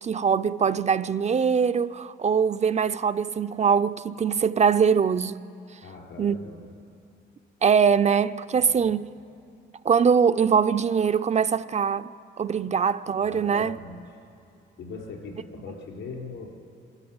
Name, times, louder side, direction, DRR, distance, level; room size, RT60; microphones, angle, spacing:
voice 1, 0.0-5.4 6.2-6.4 7.6-9.1 9.8-12.1 12.4-13.8, right 6 dB, 35° right, 0.5 m, -22 dB
voice 2, 5.8-6.7 8.5-8.9 13.1-14.0 14.8-16.6, left 4 dB, 70° left, 4.7 m, -40 dB
24.5 x 13.5 x 8.9 m
cardioid pair, 90°, 20 cm